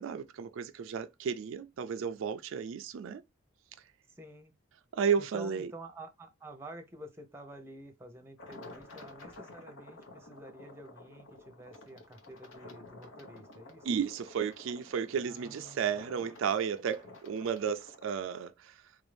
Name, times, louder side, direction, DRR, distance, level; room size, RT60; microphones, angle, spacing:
voice 1, 0.0-3.2 4.9-5.7 13.8-18.9, right 7 dB, 70° right, 0.3 m, -33 dB
voice 2, 4.1-4.5 5.2-13.9 15.3-15.8, right 1 dB, 10° right, 0.7 m, -49 dB
sound 1, 8.4-18.2, left 2 dB, 70° left, 1.0 m, -52 dB
3.6 x 2.6 x 3.3 m
head